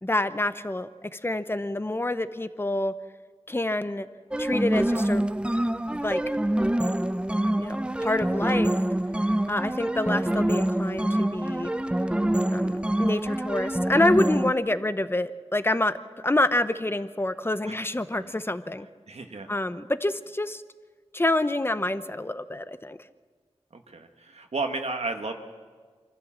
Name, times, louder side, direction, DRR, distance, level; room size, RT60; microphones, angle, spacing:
voice 1, 0.0-2.9 3.5-4.1 4.4-5.2 5.9-6.2 7.6-8.7 9.5-11.7 12.5-18.9 19.5-20.6 21.1-23.0, left 1 dB, 20° left, 12 dB, 0.8 m, -27 dB
sound 1, 4.3-14.5, right 1 dB, 10° right, 0.6 m, -26 dB
voice 2, 19.1-19.5 23.7-25.3, right 3 dB, 70° right, 4 dB, 1.4 m, -33 dB
25.0 x 14.5 x 7.4 m, 1.5 s
wide cardioid pair, 80°, 11 cm